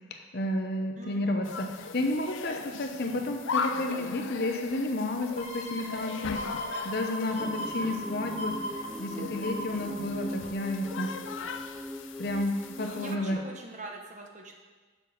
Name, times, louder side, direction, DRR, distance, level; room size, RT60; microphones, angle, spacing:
voice 1, 0.3-1.7 1.9-6.4 6.8-8.5 9.0-11.1 12.2-13.4, left 1 dB, 50° left, 4 dB, 0.9 m, -31 dB
voice 2, 1.0-1.8 7.2-7.5 11.4-11.5 12.9-14.6, right 2 dB, 35° right, 1 dB, 1.0 m, -43 dB
sound 1, 1.4-13.2, left 5 dB, 65° left, 0.5 m, -39 dB
sound 2, 5.4-10.9 11.3-11.4, equal, 30° left, 1.2 m, -39 dB
sound 3, 7.4-13.3, equal, ahead, 0.4 m, -40 dB
6.4 x 6.1 x 6.6 m, 1.4 s
head